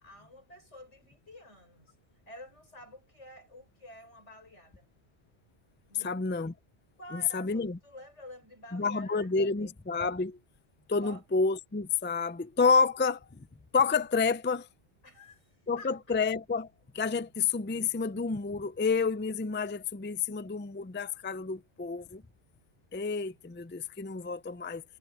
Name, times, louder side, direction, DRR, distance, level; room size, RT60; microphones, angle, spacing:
voice 1, 0.0-1.9 2.3-4.9 5.9-6.2 7.0-9.8 11.0-11.2 15.0-16.0, left 1 dB, 85° left, 7.2 m, -50 dB
voice 2, 6.0-6.5 7.1-7.8 8.7-10.4 10.9-13.5 13.7-14.7 15.7-16.7 16.9-22.2 22.9-24.8, left 4 dB, 15° left, 0.4 m, -29 dB
omnidirectional pair, 1.2 m